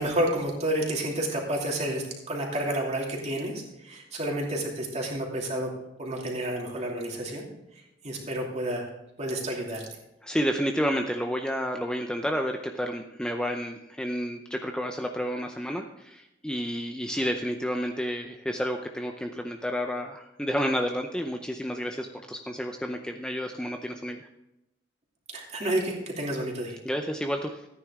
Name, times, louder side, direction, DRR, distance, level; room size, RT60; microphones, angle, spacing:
voice 1, 0.0-5.7 6.0-7.4 7.7-8.9 9.2-9.8 25.3-26.8, right 1 dB, 35° right, -1 dB, 2.8 m, -30 dB
voice 2, 10.2-24.3 26.8-27.7, equal, 5° left, 4 dB, 0.6 m, -30 dB
14.5 x 9.6 x 3.7 m, 0.89 s
head